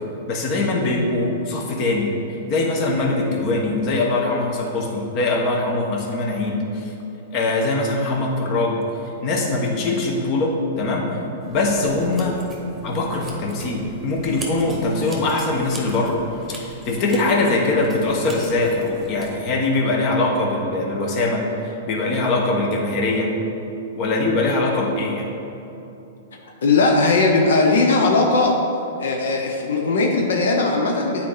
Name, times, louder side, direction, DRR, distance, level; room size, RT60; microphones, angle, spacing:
voice 1, 0.3-2.1 2.5-6.9 7.3-8.8 9.2-11.2 11.5-12.4 12.8-16.2 16.6-23.4 24.0-25.3, left 2 dB, 40° left, 0 dB, 1.2 m, -22 dB
sound 1, 11.4-19.3, right 2 dB, 10° right, 1.4 m, -39 dB
voice 2, 26.6-28.6 29.0-31.3, left 3 dB, 80° left, 1 dB, 0.9 m, -18 dB
8.3 x 4.4 x 4.9 m, 3.0 s
hypercardioid pair, 135°, 0 cm